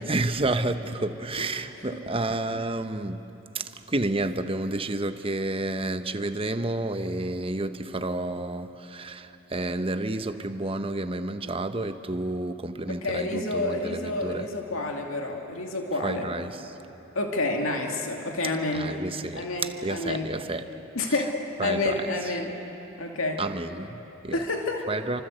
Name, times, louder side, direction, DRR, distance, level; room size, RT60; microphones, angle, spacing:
voice 1, 0.0-3.2 3.5-14.5 16.0-16.8 18.7-20.6 21.1-21.2 21.6-22.1 23.4-24.4 24.9-25.2, right 2 dB, 25° right, 9 dB, 1.0 m, -30 dB
voice 2, 12.9-16.3 17.2-18.9 19.3-20.3 21.0-22.5 23.0-23.4 24.3-24.9, left 2 dB, 80° left, 2 dB, 2.3 m, -29 dB
29.0 x 25.0 x 8.0 m, 3.0 s
head